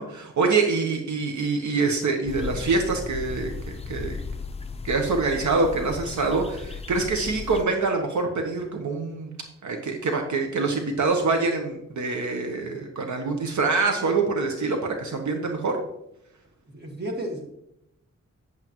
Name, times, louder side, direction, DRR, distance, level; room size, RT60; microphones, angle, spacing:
voice 1, 0.0-4.2 4.8-9.3 9.6-15.8, right 3 dB, 75° right, 4 dB, 1.0 m, -25 dB
sound 1, 2.3-7.6, left 4 dB, 20° left, 0.4 m, -36 dB
voice 2, 16.7-17.5, right 1 dB, 35° right, 1 dB, 1.7 m, -33 dB
8.9 x 8.0 x 3.0 m, 0.81 s
wide cardioid pair, 140°, 29 cm